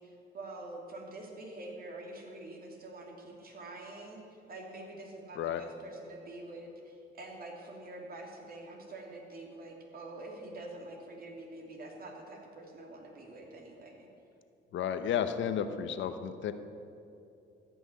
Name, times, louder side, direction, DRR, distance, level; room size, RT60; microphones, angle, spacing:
voice 1, 0.0-4.2 4.5-14.1, right 2 dB, 50° right, 0 dB, 2.8 m, -46 dB
voice 2, 14.7-16.5, left 8 dB, 70° left, 10 dB, 0.8 m, -32 dB
14.5 x 6.0 x 9.4 m, 2.7 s
cardioid pair, 90°, 20 cm